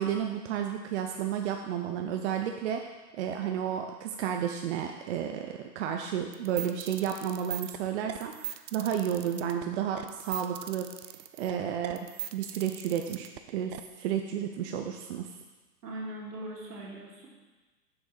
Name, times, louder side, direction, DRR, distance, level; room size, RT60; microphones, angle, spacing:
voice 1, 0.0-2.9 3.1-11.1 11.4-12.1 12.3-15.3, right 9 dB, 45° right, 4 dB, 0.6 m, -32 dB
sound 1, 6.3-13.8, right 12 dB, 85° right, 0.6 m, -40 dB
voice 2, 15.8-17.3, right 1 dB, 70° right, -3 dB, 2.5 m, -40 dB
6.8 x 5.3 x 4.7 m, 1.2 s
hypercardioid pair, 115°, 49 cm